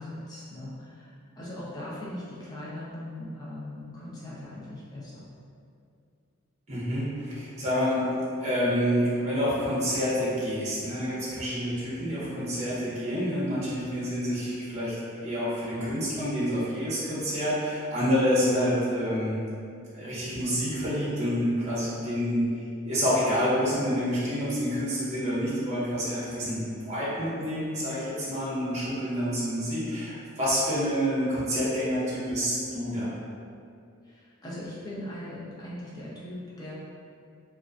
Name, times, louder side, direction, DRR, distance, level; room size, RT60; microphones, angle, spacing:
voice 1, 0.0-5.2 34.0-36.7, left 1 dB, 20° left, -8 dB, 0.5 m, -40 dB
voice 2, 6.7-8.1 8.4-19.4 19.9-22.5 22.8-33.1, equal, 30° right, -9 dB, 0.6 m, -28 dB
2.4 x 2.1 x 2.4 m, 2.4 s
head